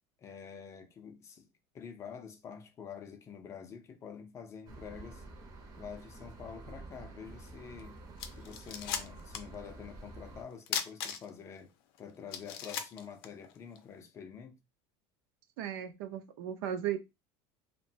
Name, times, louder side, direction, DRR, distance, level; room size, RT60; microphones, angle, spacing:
voice 1, 0.2-1.5 1.7-5.3 5.8-8.0 8.3-11.7 12.0-14.6, left 7 dB, 25° left, 0.4 m, -47 dB
sound 1, 4.7-10.4, right 2 dB, 30° right, 0.5 m, -49 dB
sound 2, 7.8-7.9 8.2-9.5 9.8-9.9 10.7-11.5 11.9-12.0 12.3-13.8, left 8 dB, 85° left, 0.5 m, -37 dB
voice 2, 15.6-17.0, right 10 dB, 80° right, 0.5 m, -36 dB
2.9 x 2.1 x 2.6 m
cardioid pair, 160°, 12 cm